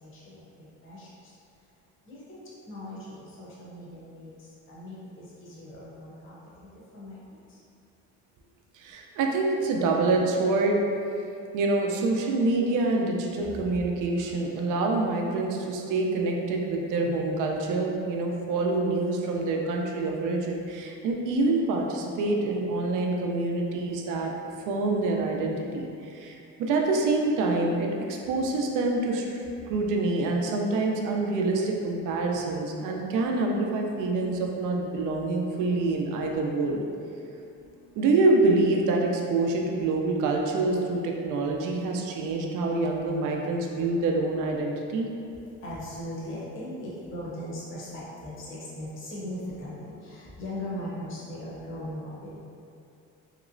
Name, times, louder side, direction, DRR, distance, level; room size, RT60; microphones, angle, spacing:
voice 1, 0.0-1.1 2.1-4.3 4.7-6.4 6.9-7.2 13.4-13.8 14.1-14.3 15.5-15.7 45.6-52.4, left 1 dB, 40° left, -7 dB, 0.7 m, -39 dB
voice 2, 8.7-10.9 11.5-24.3 24.7-36.9 38.0-45.1, right 2 dB, 75° right, 1 dB, 0.5 m, -26 dB
3.0 x 2.9 x 2.5 m, 2.6 s
cardioid pair, 165°, 31 cm